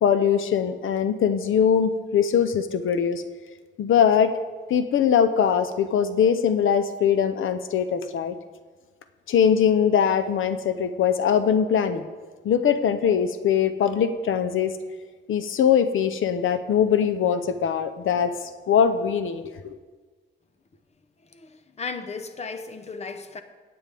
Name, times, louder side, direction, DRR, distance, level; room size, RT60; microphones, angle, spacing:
voice 1, 0.0-3.2 3.8-4.3 4.7-8.3 9.3-12.0 12.4-14.7 15.3-18.3 18.7-19.4, left 8 dB, 80° left, 9 dB, 0.7 m, -21 dB
voice 2, 21.3-23.4, left 4 dB, 30° left, 8 dB, 0.8 m, -35 dB
16.5 x 8.8 x 3.5 m, 1.4 s
wide cardioid pair, 165°, 20 cm